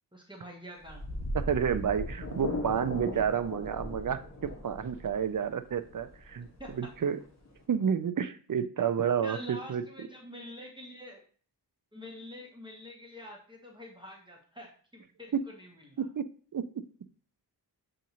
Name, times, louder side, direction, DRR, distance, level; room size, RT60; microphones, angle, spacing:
voice 1, 0.1-1.1 6.6-6.9 9.2-11.2 11.9-16.1, equal, 10° right, -1 dB, 1.0 m, -46 dB
sound 1, 0.8-7.6, left 1 dB, 40° left, 1.2 m, -38 dB
voice 2, 1.3-6.5 6.7-7.2 7.7-9.8 15.3-15.4 16.0-16.3 16.5-16.7, right 7 dB, 50° right, 11 dB, 0.5 m, -30 dB
7.3 x 2.5 x 2.9 m, 0.43 s
wide cardioid pair, 55°, 42 cm